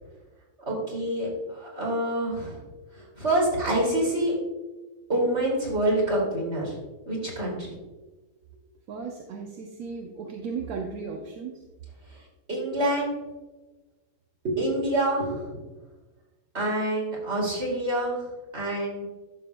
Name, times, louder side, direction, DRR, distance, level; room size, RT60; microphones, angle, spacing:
voice 1, 0.7-2.6 3.2-4.3 5.1-6.8 7.1-7.7 12.5-13.2 14.4-15.5 16.5-18.2 18.5-19.0, right 1 dB, 50° right, -3 dB, 2.8 m, -26 dB
voice 2, 8.9-11.6, right 5 dB, 80° right, 1 dB, 1.2 m, -35 dB
12.0 x 6.3 x 2.2 m, 1.2 s
omnidirectional pair, 1.6 m